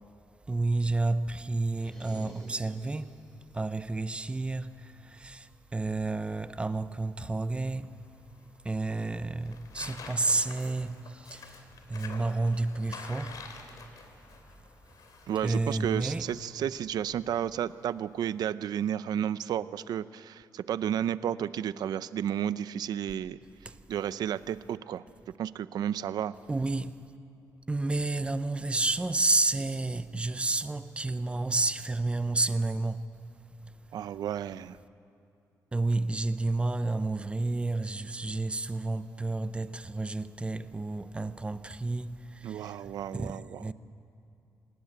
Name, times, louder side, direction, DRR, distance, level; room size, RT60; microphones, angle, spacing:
voice 1, 0.5-3.2 3.5-7.9 8.6-13.4 15.4-16.3 23.7-23.8 26.5-27.0 27.7-33.1 35.7-43.7, right 2 dB, 15° right, 0.7 m, -30 dB
sound 1, 1.7-3.3, equal, 10° left, 7.0 m, -50 dB
Tearing, 6.3-18.5, left 5 dB, 70° left, 3.0 m, -50 dB
voice 2, 15.3-23.4 23.9-25.0 25.4-26.4 33.9-34.8 42.4-43.7, right 10 dB, 85° right, 0.6 m, -32 dB
27.0 x 19.0 x 8.9 m
wide cardioid pair, 140°, 7 cm